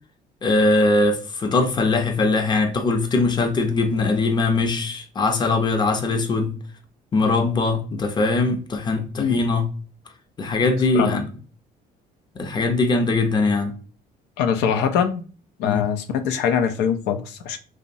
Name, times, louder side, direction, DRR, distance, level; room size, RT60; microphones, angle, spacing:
voice 1, 0.4-6.6 7.1-9.7 10.4-11.2 12.4-13.7 15.6-15.8, left 3 dB, 25° left, 0.5 m, -21 dB
voice 2, 14.4-15.2 15.6-17.6, left 7 dB, 90° left, 0.4 m, -22 dB
2.8 x 2.0 x 2.5 m
cardioid pair, 110°, 17 cm